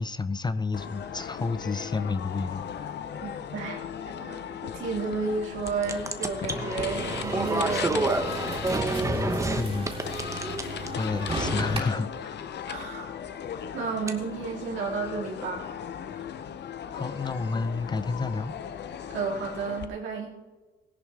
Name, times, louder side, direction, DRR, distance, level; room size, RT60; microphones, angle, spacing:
voice 1, 0.0-2.7 9.0-9.9 11.0-12.4 16.9-18.5, left 4 dB, 20° left, 13 dB, 0.5 m, -30 dB
sound 1, 0.7-19.8, left 8 dB, 60° left, 0.8 m, -37 dB
voice 2, 3.2-8.4 12.7-13.1 13.7-15.6 19.1-20.3, right 4 dB, 75° right, -2 dB, 2.8 m, -32 dB
sound 2, 5.7-9.6 9.9-10.9 14.1-14.2, right 2 dB, 15° right, 1.1 m, -28 dB
sound 3, 6.8-11.8, right 2 dB, 30° right, 3.2 m, -35 dB
16.5 x 11.0 x 3.4 m, 1.2 s
cardioid pair, 90°, 20 cm